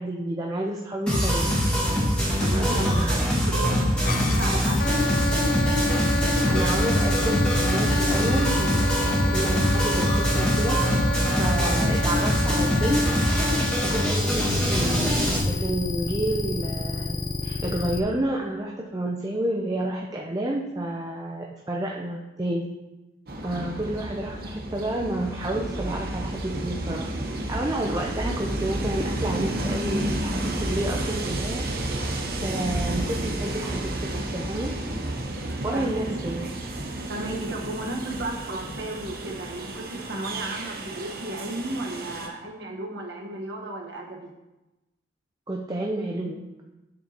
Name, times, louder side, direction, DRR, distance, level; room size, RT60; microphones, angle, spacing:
voice 1, 0.0-1.5 2.5-3.2 6.0-9.0 9.3-11.0 11.4-13.2 13.8-17.2 17.4-22.7 23.4-32.0 32.4-34.7 35.6-36.5 45.5-46.4, right 1 dB, 20° right, -1 dB, 0.5 m, -30 dB
sound 1, 1.1-15.4, equal, 5° left, 1.7 m, -23 dB
voice 2, 2.4-4.8 35.7-36.2 37.1-44.3, right 1 dB, 80° right, -1 dB, 1.3 m, -34 dB
sound 2, 4.0-18.0, left 1 dB, 50° left, 0.6 m, -29 dB
Train, 23.3-42.3, right 1 dB, 55° right, 1.0 m, -31 dB
9.0 x 7.1 x 2.9 m, 1.0 s
head